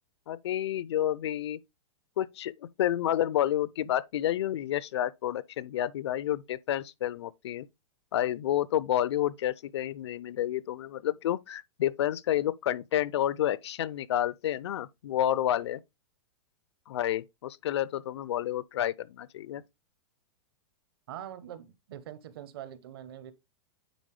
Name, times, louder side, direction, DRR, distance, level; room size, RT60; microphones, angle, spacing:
voice 1, 0.3-1.6 2.2-7.7 8.1-15.8 16.9-19.6, left 12 dB, 60° left, 0.5 m, -30 dB
voice 2, 21.1-23.3, right 11 dB, 50° right, 0.9 m, -43 dB
9.2 x 4.1 x 3.2 m
supercardioid pair, 180°, 16 cm